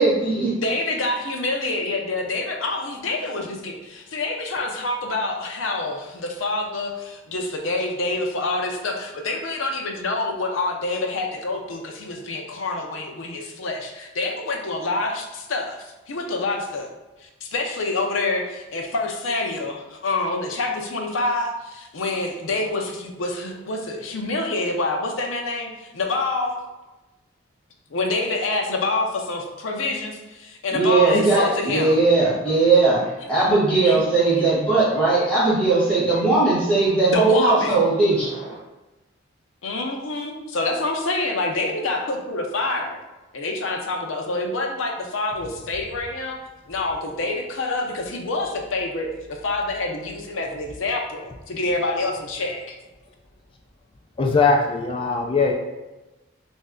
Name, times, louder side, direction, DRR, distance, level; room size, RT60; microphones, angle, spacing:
voice 1, 0.0-0.5 30.7-33.0 33.3-38.3, right 3 dB, 5° left, -10 dB, 1.4 m, -18 dB
voice 2, 0.6-16.9 17.2-26.7 27.9-32.0 33.8-34.0 37.1-37.8 39.6-43.0 43.3-46.4 46.7-52.8, left 2 dB, 80° left, 2 dB, 0.6 m, -27 dB
voice 3, 54.2-55.5, left 4 dB, 25° left, 1 dB, 0.3 m, -20 dB
3.1 x 2.6 x 3.6 m, 1.1 s
head